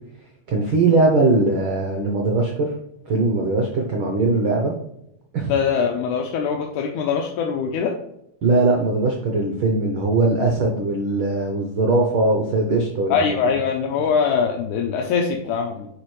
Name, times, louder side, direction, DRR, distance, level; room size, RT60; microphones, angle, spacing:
voice 1, 0.5-2.7 3.1-4.7 5.3-5.5 8.4-13.1, right 2 dB, 75° right, 0 dB, 1.2 m, -20 dB
voice 2, 5.5-7.9 13.1-15.9, left 6 dB, 80° left, 1 dB, 2.1 m, -22 dB
9.8 x 4.1 x 3.2 m, 0.78 s
omnidirectional pair, 3.6 m